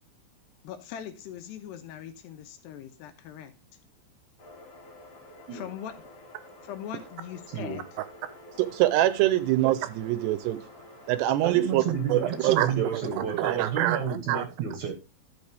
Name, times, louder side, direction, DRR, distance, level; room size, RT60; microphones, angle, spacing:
voice 1, 0.6-3.5 5.5-5.9 6.6-7.9, left 9 dB, 75° left, 3.0 m, -40 dB
sound 1, 4.4-13.6, left 1 dB, 45° left, 2.4 m, -50 dB
voice 2, 8.6-10.6 11.1-11.8 12.1-14.5, right 14 dB, 80° right, 2.8 m, -25 dB
voice 3, 11.4-14.9, right 7 dB, 60° right, 2.2 m, -30 dB
11.5 x 6.7 x 3.5 m
omnidirectional pair, 5.0 m